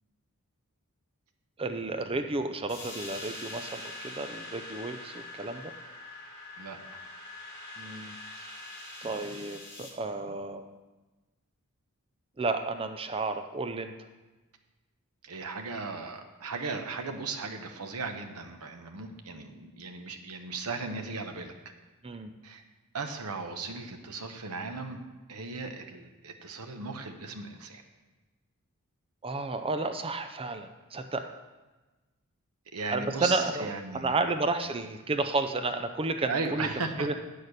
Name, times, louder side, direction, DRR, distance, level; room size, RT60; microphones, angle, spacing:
voice 1, 1.6-5.7 7.8-8.2 9.0-10.8 12.4-13.9 22.0-22.3 29.2-31.2 32.9-36.7 37.0-37.1, right 3 dB, 25° right, 8 dB, 0.5 m, -32 dB
sound 1, 2.7-9.9, left 2 dB, 25° left, 2.8 m, -43 dB
voice 2, 15.2-21.5 22.4-22.6 22.9-25.0 25.3-27.8 32.7-34.1 36.3-37.1, right 4 dB, 80° right, 5 dB, 0.9 m, -36 dB
8.6 x 6.5 x 6.5 m, 1.2 s
head